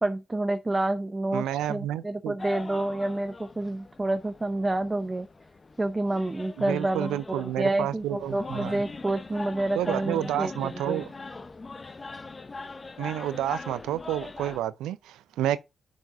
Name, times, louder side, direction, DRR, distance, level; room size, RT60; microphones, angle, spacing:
voice 1, 0.0-5.3 5.8-11.0, right 2 dB, 25° right, 0.7 m, -29 dB
voice 2, 1.3-2.3 6.6-8.7 9.8-11.1 13.0-15.6, right 12 dB, 80° right, 0.5 m, -30 dB
sound 1, 2.4-14.6, left 3 dB, 35° left, 0.8 m, -41 dB
6.3 x 4.7 x 5.6 m
hypercardioid pair, 45°, 0 cm